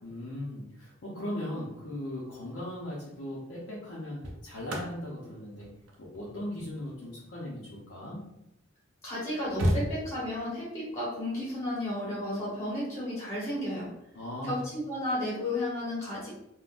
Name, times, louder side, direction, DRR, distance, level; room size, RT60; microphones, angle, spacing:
voice 1, 0.0-5.7 6.0-8.2 14.1-14.7, left 1 dB, 90° left, -7 dB, 0.7 m, -38 dB
sound 1, 2.6-2.9 3.8-8.4 8.9-9.0 9.2-10.5 12.2-12.4, equal, 80° right, 0.6 m, -35 dB
voice 2, 9.0-13.9 14.4-16.3, left 1 dB, 15° left, -8 dB, 1.1 m, -33 dB
3.7 x 2.2 x 2.5 m, 0.84 s
head